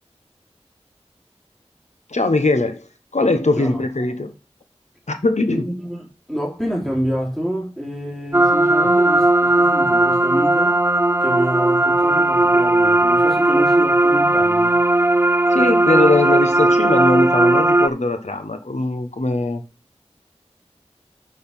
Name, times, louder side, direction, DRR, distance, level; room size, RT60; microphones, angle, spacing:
voice 1, 2.1-2.8 3.1-4.3 5.1-5.7 8.8-8.9 15.5-19.6, left 2 dB, 80° left, 1.3 m, -20 dB
voice 2, 5.5-9.3 9.5-10.8 11.2-14.8, equal, 5° left, 3.4 m, -27 dB
sound 1, 8.3-17.9, right 2 dB, 20° right, 0.5 m, -16 dB
6.9 x 6.4 x 5.6 m
wide cardioid pair, 45°, 12 cm